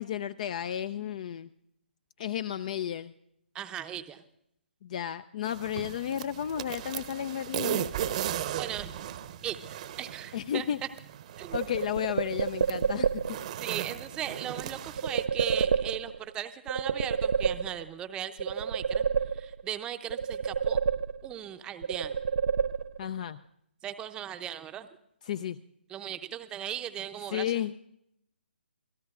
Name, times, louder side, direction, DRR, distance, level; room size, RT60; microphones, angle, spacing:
voice 1, 0.0-1.5 2.2-3.1 4.8-7.8 10.3-10.8 11.5-13.2 23.0-23.4 25.3-25.6 27.3-27.7, left 10 dB, 40° left, 14 dB, 0.5 m, -33 dB
voice 2, 3.5-4.2 8.6-8.9 9.4-10.7 11.4-11.6 12.8-12.9 13.6-20.8 21.2-22.2 23.8-24.9 25.9-27.7, right 10 dB, 15° right, 9 dB, 0.7 m, -38 dB
sound 1, 5.4-15.2, right 11 dB, 40° right, 0.9 m, -37 dB
sound 2, 11.5-13.5 15.0-16.3 16.7-18.0 18.4-19.8 20.1-21.5 21.8-23.2, right 6 dB, 65° right, 0.5 m, -29 dB
27.5 x 17.5 x 2.4 m, 0.74 s
figure-of-eight pair, 140°, 6 cm